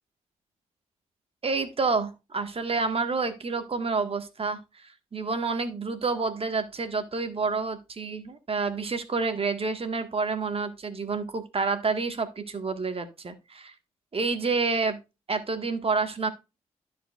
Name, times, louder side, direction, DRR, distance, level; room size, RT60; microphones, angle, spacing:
voice 1, 1.4-13.7 14.1-15.0 15.3-16.3, right 4 dB, 40° right, 8 dB, 1.6 m, -29 dB
13.0 x 4.8 x 2.4 m, 0.26 s
hypercardioid pair, 45°, 14 cm